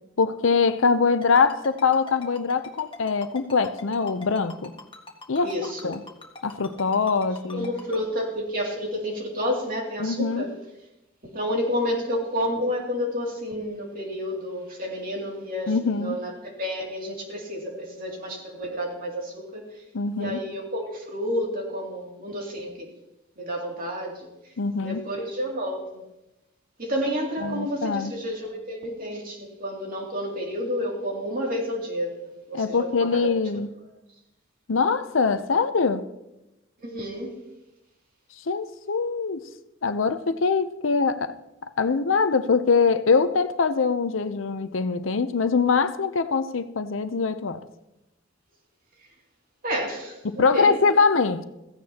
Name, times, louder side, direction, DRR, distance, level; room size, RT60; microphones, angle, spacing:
voice 1, 0.2-4.7 5.3-5.5 5.8-6.0 6.4-7.7 10.0-10.5 15.7-16.2 19.9-20.4 24.6-25.0 27.4-28.1 32.5-33.7 34.7-36.1 38.5-39.5 39.8-41.3 41.8-47.6 50.2-51.4, left 5 dB, 70° left, 11 dB, 0.7 m, -23 dB
Ringtone, 1.2-8.0, left 2 dB, 25° left, 1.6 m, -42 dB
voice 2, 5.4-5.9 7.5-10.5 11.3-19.6 20.1-22.9 23.4-24.3 24.8-26.0 26.8-32.1 32.5-33.3 36.8-37.4 49.6-50.8, equal, 45° right, 0 dB, 2.7 m, -30 dB
16.0 x 15.0 x 2.9 m, 0.93 s
head